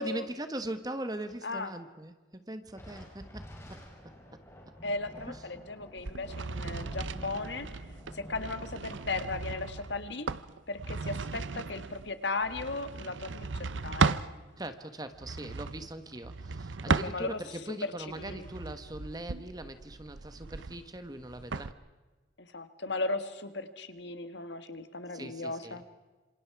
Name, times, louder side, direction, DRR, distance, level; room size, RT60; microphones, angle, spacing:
voice 1, 0.0-3.8 4.3-4.4 5.3-5.4 14.6-21.8 25.1-25.8, right 1 dB, 20° right, 10 dB, 1.3 m, -41 dB
Thunder, 2.7-11.4, equal, 15° left, 4.3 m, -50 dB
voice 2, 4.8-7.7 8.1-10.3 10.7-13.5 13.8-14.2 16.9-17.4 17.8-18.4 22.4-25.8, left 3 dB, 70° left, 10 dB, 1.6 m, -36 dB
sound 1, 6.0-14.3 15.1-17.6 18.1-21.7, right 4 dB, 80° right, 0.7 m, -35 dB
27.5 x 26.0 x 4.8 m, 1.3 s
head